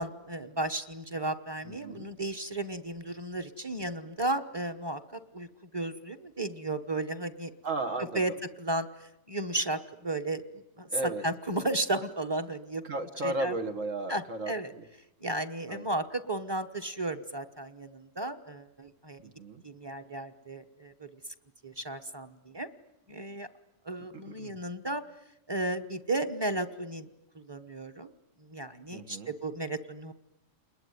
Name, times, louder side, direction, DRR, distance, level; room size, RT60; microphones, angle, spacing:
voice 1, 0.0-5.5 5.7-7.5 8.0-8.3 8.6-10.4 10.8-12.8 13.2-13.5 14.1-14.7 15.2-19.2 19.6-21.1 21.6-22.7 23.1-23.5 23.8-25.0 25.5-27.1 27.3-28.1 28.5-30.1, right 2 dB, 20° right, 11 dB, 1.1 m, -34 dB
voice 2, 1.7-2.1 7.6-8.2 10.9-11.2 12.8-14.9 15.7-15.9 19.2-19.6 24.3-24.6 28.9-29.3, right 2 dB, 75° right, 5 dB, 1.9 m, -35 dB
29.0 x 21.0 x 9.5 m, 0.90 s
omnidirectional pair, 1.3 m